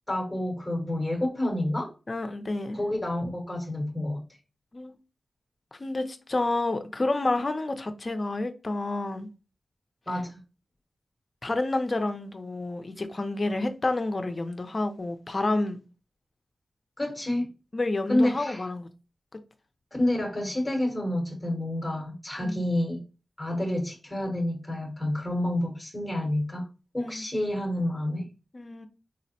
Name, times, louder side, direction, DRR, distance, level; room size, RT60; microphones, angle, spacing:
voice 1, 0.1-1.9 2.7-4.2 10.1-10.4 17.0-17.5 18.1-18.7 19.9-23.0 23.4-26.6 26.9-28.3, left 1 dB, 5° left, 0.9 m, -29 dB
voice 2, 2.1-2.8 4.7-4.9 5.7-9.3 11.4-15.8 17.7-18.9 22.4-22.6 27.0-27.2 28.5-28.9, left 2 dB, 35° left, 0.4 m, -29 dB
4.1 x 2.0 x 2.7 m
wide cardioid pair, 135°, 0 cm